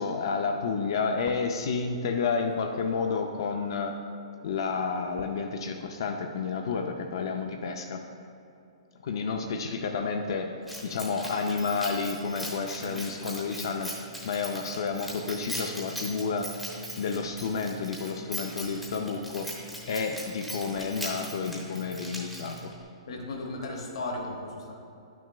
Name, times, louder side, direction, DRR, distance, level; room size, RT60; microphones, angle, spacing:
voice 1, 0.0-4.0 4.4-8.0 9.0-10.5 10.8-13.9 14.2-16.5 17.0-19.5 19.9-22.6, left 5 dB, 45° left, 4 dB, 0.4 m, -30 dB
Keys jangling, 10.7-22.8, equal, ahead, 0.7 m, -40 dB
voice 2, 23.1-24.7, left 2 dB, 65° left, 0 dB, 1.0 m, -36 dB
9.7 x 6.0 x 2.2 m, 2.7 s
hypercardioid pair, 175°, 3 cm